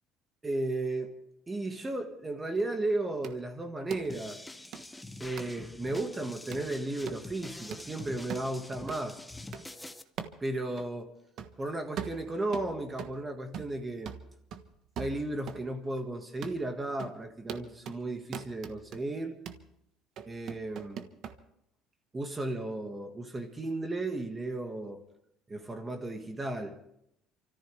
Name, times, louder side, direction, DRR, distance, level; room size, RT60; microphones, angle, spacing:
voice 1, 0.4-1.1 1.5-4.4 5.2-9.2 10.4-11.1 11.6-14.1 15.0-19.4 20.3-21.1 22.1-25.0 25.5-26.7, right 2 dB, 15° right, 1.8 m, -34 dB
sound 1, 3.2-3.4 3.9-4.1 4.7-4.8 5.4-5.5 6.0-6.1 6.5-6.7 7.1-7.2 7.7-7.9 8.3-8.5 8.9-9.0 9.5-9.6 10.2-10.4 10.8-10.9 11.4-11.6 12.0-13.2 13.5-13.8 14.1-15.7 16.0-16.1 16.4-16.6 17.0-17.2 17.5-18.0 18.3-19.0 19.5-19.7 20.2-21.4, right 8 dB, 55° right, 1.3 m, -41 dB
sound 2, 4.1-10.0, left 2 dB, 5° left, 0.8 m, -45 dB
28.5 x 14.0 x 3.5 m
cardioid pair, 150°, 0 cm